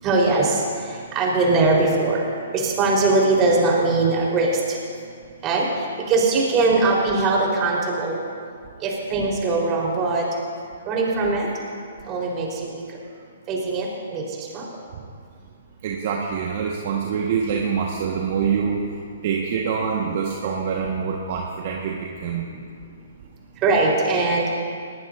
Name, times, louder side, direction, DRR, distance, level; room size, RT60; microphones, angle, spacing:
voice 1, 0.0-0.6 1.1-2.3 2.5-4.6 5.4-5.7 6.1-8.2 8.8-10.2 10.9-11.5 12.1-12.5 13.5-14.2 14.5-14.6 23.6-24.4, right 3 dB, 25° right, -3 dB, 4.2 m, -20 dB
voice 2, 15.8-18.8 19.2-22.5, right 6 dB, 50° right, -1 dB, 1.5 m, -25 dB
19.5 x 18.5 x 2.7 m, 2.2 s
figure-of-eight pair, 125°, 0 cm